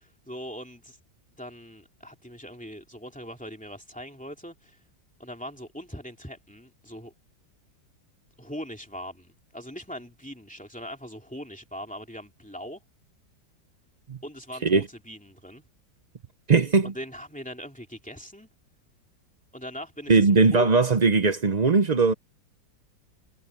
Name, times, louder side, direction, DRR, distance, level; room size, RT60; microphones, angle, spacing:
voice 1, 0.3-1.0 1.4-4.8 5.2-7.1 8.4-12.8 14.2-15.6 16.8-18.5 19.5-20.7, equal, 5° left, 2.7 m, -40 dB
voice 2, 16.5-16.9 20.1-22.1, right 4 dB, 85° right, 0.3 m, -19 dB
omnidirectional pair, 2.0 m